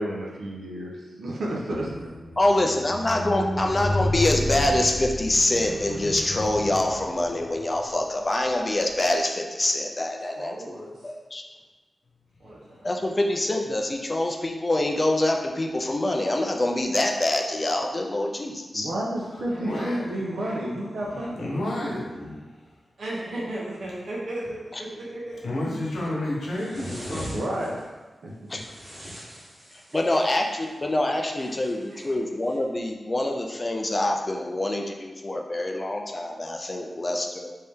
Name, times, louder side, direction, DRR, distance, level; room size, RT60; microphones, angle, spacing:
voice 1, 0.0-2.1 18.7-21.6 27.3-27.8 28.2-28.6, right 1 dB, 85° right, -3 dB, 0.7 m, -31 dB
Squeak, 1.7-8.0 8.8-8.9, left 1 dB, 40° right, 1.2 m, -31 dB
voice 2, 2.4-11.5 12.8-18.9 24.7-24.8 28.5-28.6 29.9-37.5, left 1 dB, 25° left, 2 dB, 0.3 m, -25 dB
voice 3, 10.2-11.1 12.4-12.8 19.5-21.6 23.0-25.4 29.0-29.1 29.9-30.3 31.1-31.6 31.9-32.2 36.8-37.1, right 1 dB, 65° right, -5 dB, 1.0 m, -38 dB
voice 4, 19.6-20.0 21.0-22.7 25.4-27.4, left 1 dB, 85° left, -5 dB, 0.9 m, -31 dB
sound 1, 26.5-27.8 28.5-30.3 31.4-32.1, equal, 25° right, 1.1 m, -40 dB
3.3 x 2.7 x 3.4 m, 1.2 s
wide cardioid pair, 170°, 0 cm